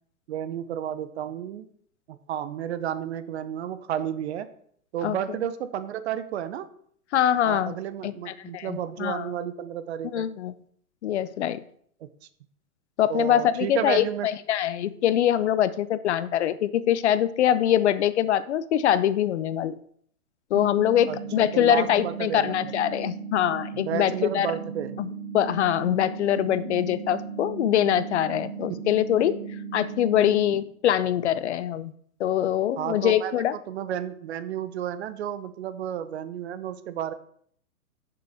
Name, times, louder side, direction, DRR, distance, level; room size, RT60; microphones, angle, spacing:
voice 1, 0.3-1.7 2.1-4.5 4.9-6.7 7.4-10.3 12.0-12.1 13.1-14.3 21.1-22.7 23.8-25.0 28.8-28.9 32.8-37.1, right 10 dB, 50° right, 13 dB, 0.7 m, -32 dB
voice 2, 7.1-7.7 8.0-9.3 10.0-10.5 11.0-11.6 13.0-19.7 20.5-24.5 25.0-29.4 29.7-31.9 32.2-33.5, left 11 dB, 55° left, 16 dB, 0.5 m, -24 dB
sound 1, 20.5-30.5, right 6 dB, 15° right, 1.4 m, -37 dB
9.4 x 6.9 x 3.4 m, 0.62 s
hypercardioid pair, 145°, 43 cm